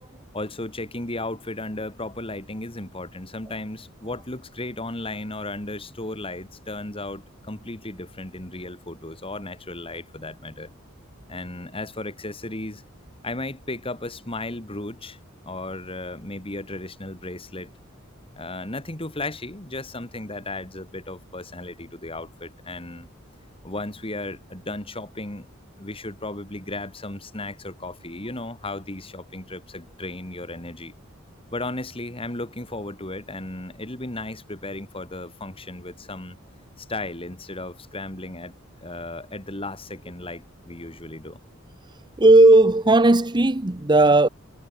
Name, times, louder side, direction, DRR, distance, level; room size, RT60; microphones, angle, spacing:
voice 1, 0.3-10.7 11.3-12.8 13.2-15.2 15.4-17.7 18.4-23.1 23.6-25.5 25.8-30.9 31.5-36.4 36.8-41.4, left 2 dB, 25° left, 2.9 m, -35 dB
voice 2, 42.2-44.3, right 2 dB, 20° right, 0.8 m, -15 dB
head